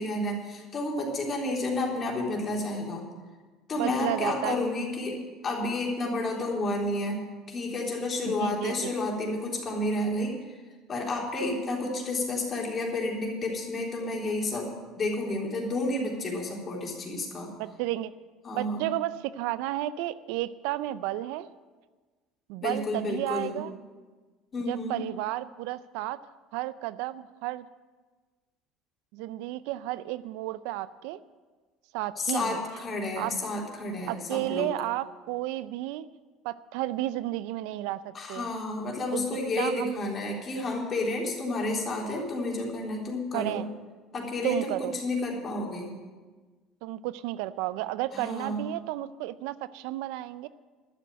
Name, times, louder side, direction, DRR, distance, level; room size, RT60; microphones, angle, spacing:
voice 1, 0.0-3.0 3.7-5.2 5.4-10.4 10.9-17.5 18.4-18.9 22.6-23.6 24.5-25.0 32.2-34.7 38.1-43.7 44.1-46.0 48.1-48.7, left 2 dB, 35° left, -1 dB, 3.8 m, -31 dB
voice 2, 3.8-4.6 8.4-8.9 17.6-18.1 18.5-21.5 22.5-23.7 24.7-26.2 26.5-27.7 29.1-31.2 31.9-32.6 33.2-33.3 34.1-36.1 36.4-38.5 39.1-39.2 39.6-39.9 43.3-43.7 44.4-45.0 46.8-50.5, right 15 dB, 75° right, 16 dB, 0.4 m, -32 dB
12.0 x 7.5 x 9.1 m, 1.3 s
supercardioid pair, 95°, 0 cm